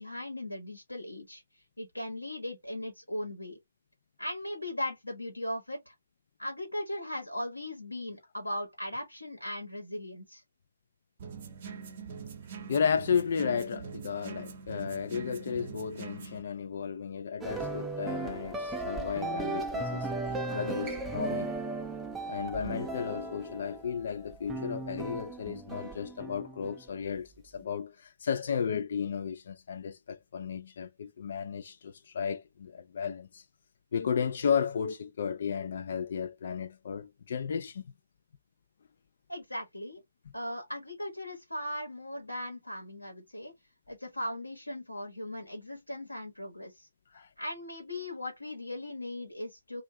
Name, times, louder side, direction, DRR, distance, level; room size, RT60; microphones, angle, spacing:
voice 1, 0.0-1.4 1.8-3.6 4.2-5.9 6.4-10.4 39.3-40.0 40.3-43.5 43.9-46.9 47.4-49.8, left 1 dB, 90° left, 1.1 m, -38 dB
sound 1, 11.2-16.4, right 6 dB, 40° right, 0.8 m, -43 dB
voice 2, 12.7-20.1 20.4-21.5 22.3-33.4 33.9-37.8 47.1-47.3, left 7 dB, 50° left, 0.4 m, -33 dB
sound 2, 17.4-26.8, right 3 dB, 10° right, 0.5 m, -36 dB
2.6 x 2.4 x 3.1 m
figure-of-eight pair, 135°, 0 cm